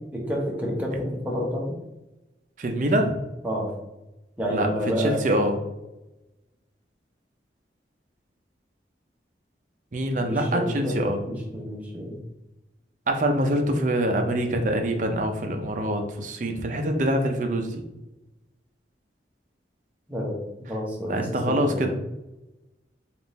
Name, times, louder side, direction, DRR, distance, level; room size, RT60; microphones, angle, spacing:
voice 1, 0.1-1.8 3.4-3.7 4.4-5.3 10.2-11.0 11.3-12.2 20.1-20.4 20.7-21.9, equal, 10° right, -3 dB, 0.8 m, -29 dB
voice 2, 2.6-3.2 4.5-4.7 5.0-5.5 9.9-11.2 13.1-17.8 21.1-21.9, right 1 dB, 45° right, 4 dB, 0.5 m, -25 dB
3.7 x 2.4 x 4.0 m, 0.96 s
head